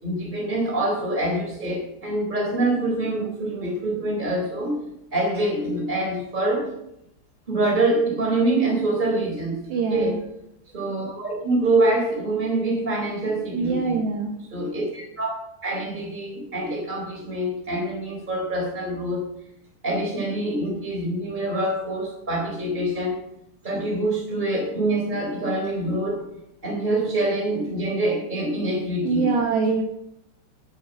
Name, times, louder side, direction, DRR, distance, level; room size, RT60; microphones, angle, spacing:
voice 1, 0.0-4.8 5.1-6.7 7.5-9.6 9.9-10.2 10.7-14.0 14.5-15.3 15.6-19.2 19.8-23.2 23.6-26.2 26.6-29.4, right 2 dB, 10° right, -1 dB, 3.4 m, -25 dB
voice 2, 9.7-10.2 13.5-14.4 29.0-29.8, right 4 dB, 70° right, 1 dB, 2.9 m, -24 dB
9.1 x 8.5 x 7.3 m, 0.80 s
omnidirectional pair, 5.9 m